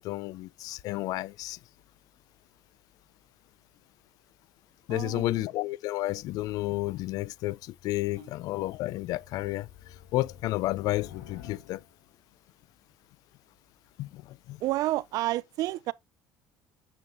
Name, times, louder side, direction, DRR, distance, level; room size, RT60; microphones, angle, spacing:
voice 1, 0.0-1.6 4.9-9.7 10.1-11.8 14.0-14.2 14.5-14.6, left 17 dB, 60° left, 0.4 m, -31 dB
voice 2, 4.9-5.5 8.2-8.3 14.6-15.9, right 16 dB, 60° right, 0.4 m, -30 dB
sound 1, 7.3-12.1, left 10 dB, 80° left, 2.3 m, -51 dB
6.9 x 6.8 x 2.6 m
cardioid pair, 120°, 7 cm